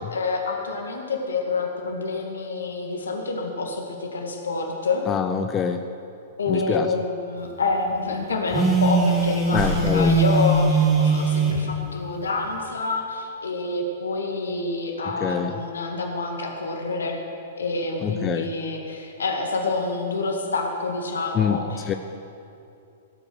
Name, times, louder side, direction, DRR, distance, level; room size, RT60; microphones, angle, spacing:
voice 1, 0.0-5.1 6.4-17.2 17.6-22.0, left 3 dB, 70° left, 2 dB, 2.0 m, -27 dB
voice 2, 5.1-5.8 6.5-6.9 9.5-10.2 15.0-15.5 18.0-18.5 21.3-21.6 21.9-22.0, left 7 dB, 25° left, 7 dB, 0.6 m, -25 dB
Telephone, 8.5-11.6, right 3 dB, 20° right, 2.0 m, -20 dB
sound 1, 9.1-11.2, right 3 dB, 55° right, 4.1 m, -33 dB
16.0 x 8.6 x 6.3 m, 2.6 s
figure-of-eight pair, 105°, 0 cm